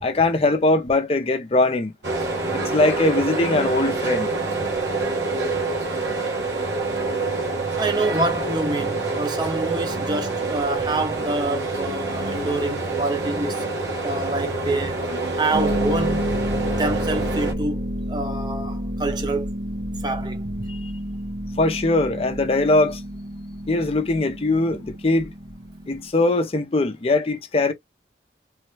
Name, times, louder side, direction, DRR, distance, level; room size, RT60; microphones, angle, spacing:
voice 1, 0.0-1.9 2.5-4.3 20.7-20.8 21.6-23.0 23.7-25.3 25.9-27.7, left 2 dB, 35° left, 0.5 m, -21 dB
sound 1, 2.0-17.5, right 3 dB, 90° right, 1.2 m, -26 dB
voice 2, 7.8-13.6 14.0-15.1 15.3-16.3 16.6-19.5 20.0-20.7, right 2 dB, 25° right, 0.7 m, -27 dB
Harp, 15.5-26.1, equal, 65° right, 0.8 m, -30 dB
3.1 x 2.2 x 3.1 m
head